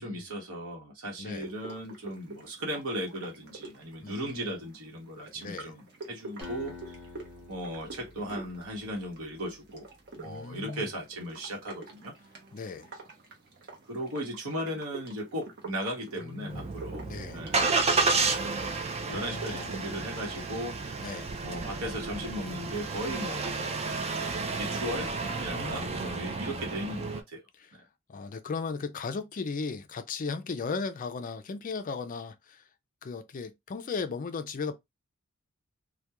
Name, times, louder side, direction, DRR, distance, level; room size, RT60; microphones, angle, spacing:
voice 1, 0.0-7.0 7.5-9.9 10.1-12.1 13.8-17.1 17.3-17.7 18.4-21.0 21.4-27.4 27.7-27.9, equal, 80° right, 1.0 m, -37 dB
voice 2, 1.2-1.5 4.0-4.6 5.4-5.7 10.2-10.9 12.5-12.9 16.2-16.7 17.0-17.5 19.0-19.7 21.0-21.4 25.5-26.0 27.6-27.7 28.1-32.6 33.0-34.7, left 4 dB, 40° left, 0.4 m, -36 dB
sound 1, 1.4-20.5, right 3 dB, 50° right, 0.8 m, -48 dB
Acoustic guitar, 6.4-9.4, left 3 dB, 5° right, 0.9 m, -47 dB
Engine starting, 16.5-27.2, right 4 dB, 30° right, 0.3 m, -31 dB
2.3 x 2.2 x 2.8 m
head